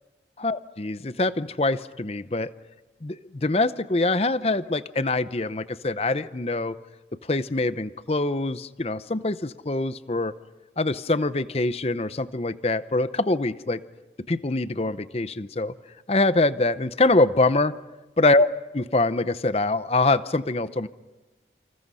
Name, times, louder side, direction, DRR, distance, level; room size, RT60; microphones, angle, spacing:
voice 1, 0.4-2.5 3.0-6.8 7.3-10.3 10.8-13.8 14.3-15.7 16.1-17.7 18.2-18.5 18.7-20.9, left 2 dB, 35° left, 14 dB, 0.7 m, -24 dB
28.5 x 27.0 x 5.6 m, 1.2 s
head